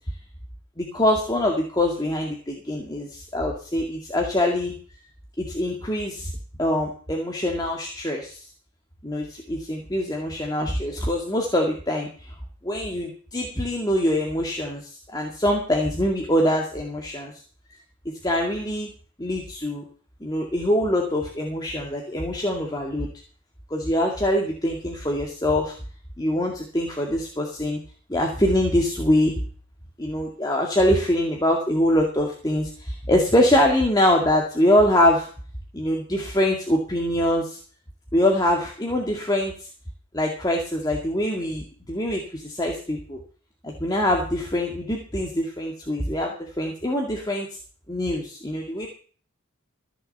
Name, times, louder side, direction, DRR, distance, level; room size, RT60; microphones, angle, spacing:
voice 1, 0.8-5.0 5.4-6.3 6.6-8.5 9.0-12.3 12.6-17.3 17.7-17.8 18.2-18.9 19.2-19.8 20.2-23.1 23.7-25.7 26.2-27.8 28.1-29.3 30.0-35.3 35.7-37.6 38.1-39.7 40.1-43.2 43.6-47.5 47.9-48.9, left 1 dB, 20° left, 0 dB, 2.1 m, -24 dB
15.0 x 7.1 x 6.7 m, 0.41 s
head